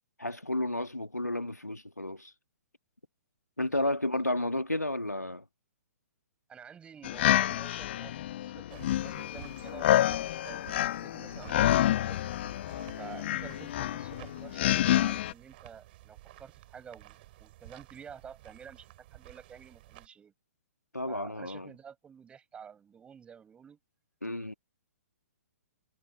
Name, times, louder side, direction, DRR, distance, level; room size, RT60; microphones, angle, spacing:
voice 1, 0.2-2.3 3.6-5.4 11.3-11.4 20.9-21.7 24.2-24.5, left 1 dB, 90° left, 1.8 m, -32 dB
voice 2, 6.5-12.2 13.0-20.3 21.0-23.8, right 7 dB, 15° right, 6.6 m, -50 dB
sound 1, 7.0-15.3, left 13 dB, 45° left, 2.1 m, -28 dB
sound 2, 8.7-20.1, right 17 dB, 40° right, 7.0 m, -53 dB
figure-of-eight pair, 120°, 8 cm